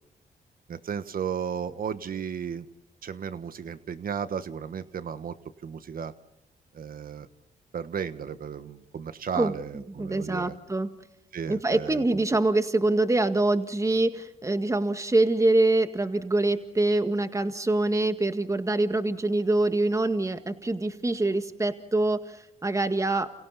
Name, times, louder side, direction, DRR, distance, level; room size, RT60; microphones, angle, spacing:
voice 1, 0.7-2.6 3.0-5.4 5.6-6.1 6.7-7.3 7.7-10.6 11.3-12.2, right 7 dB, 65° right, 12 dB, 1.4 m, -34 dB
voice 2, 10.0-10.9 11.5-23.3, right 2 dB, 20° right, 8 dB, 2.0 m, -25 dB
30.0 x 29.5 x 4.2 m, 0.92 s
cardioid pair, 65°, 16 cm